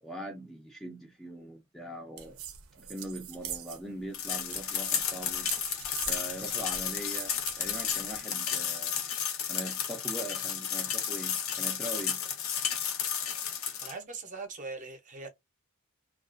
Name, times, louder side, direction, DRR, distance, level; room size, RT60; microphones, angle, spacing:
voice 1, 0.0-2.4 2.8-5.5 6.1-9.0 9.5-12.2, right 1 dB, ahead, 0.4 m, -41 dB
sound 1, 2.2-8.2, right 9 dB, 85° right, 0.5 m, -43 dB
sound 2, 4.1-13.9, left 8 dB, 80° left, 0.6 m, -32 dB
voice 2, 13.7-15.3, right 4 dB, 35° right, 0.7 m, -41 dB
2.3 x 2.2 x 2.4 m
head